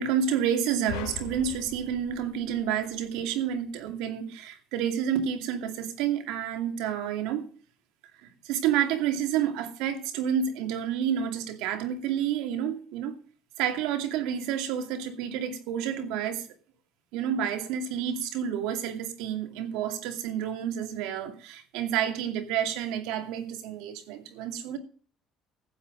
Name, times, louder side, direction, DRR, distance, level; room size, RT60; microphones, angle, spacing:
voice 1, 0.0-7.5 8.2-13.1 13.6-16.5 17.1-24.8, right 9 dB, 85° right, 2.4 m, -29 dB
sound 1, 0.9-3.3, left 10 dB, 90° left, 2.6 m, -41 dB
15.0 x 8.5 x 5.2 m
cardioid pair, 105°, 0 cm